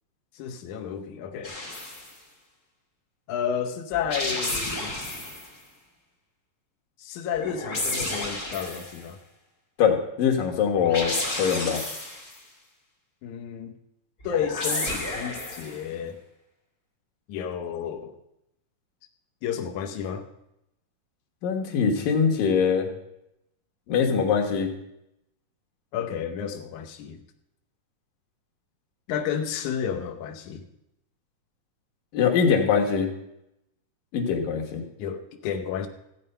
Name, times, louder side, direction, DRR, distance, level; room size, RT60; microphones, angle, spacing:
voice 1, 0.3-1.6 3.3-4.9 7.0-9.2 13.2-13.7 14.2-16.2 17.3-18.2 19.4-20.3 25.9-27.2 29.1-30.7 35.0-35.9, left 8 dB, 70° left, 4 dB, 2.2 m, -31 dB
sound 1, 1.4-2.1 3.9-5.5 7.3-9.0 10.8-12.4 14.2-15.8, left 2 dB, 25° left, 2.7 m, -31 dB
voice 2, 9.8-11.8 21.4-22.9 23.9-24.7 32.1-33.1 34.1-34.8, left 6 dB, 90° left, 3 dB, 3.1 m, -23 dB
15.0 x 8.8 x 5.5 m, 0.85 s
omnidirectional pair, 3.8 m